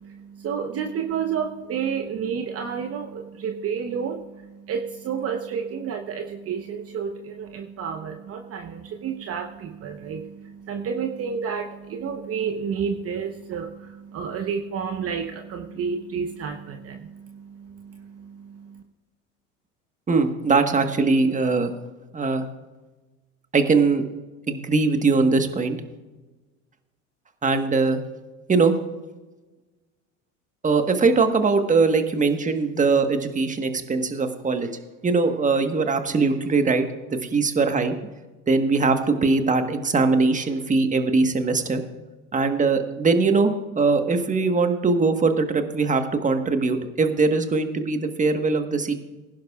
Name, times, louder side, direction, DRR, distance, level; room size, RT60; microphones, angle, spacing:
voice 1, 0.0-18.8, right 6 dB, 40° right, 5 dB, 1.0 m, -30 dB
voice 2, 20.1-21.7 22.1-22.5 23.5-24.0 24.5-25.8 27.4-28.0 28.5-28.8 30.6-34.7 35.0-36.8 37.2-38.0 38.5-41.8 42.3-48.9, right 4 dB, 20° right, 7 dB, 1.5 m, -21 dB
20.5 x 11.0 x 2.5 m, 1.2 s
hypercardioid pair, 80°, 37 cm